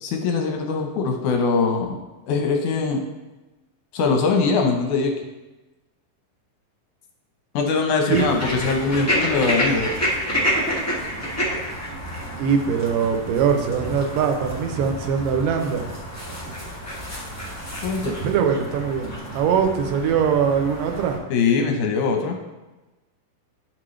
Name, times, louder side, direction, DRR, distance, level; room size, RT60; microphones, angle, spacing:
voice 1, 0.0-2.0 2.3-3.0 3.9-5.1 7.5-9.9 17.8-18.1 21.3-22.4, left 4 dB, 70° left, 2 dB, 2.1 m, -22 dB
sound 1, 8.1-21.2, equal, 20° left, 0.4 m, -29 dB
voice 2, 12.4-15.9 18.1-21.2, right 7 dB, 75° right, 4 dB, 2.3 m, -22 dB
11.0 x 6.1 x 3.2 m, 1.1 s
omnidirectional pair, 4.1 m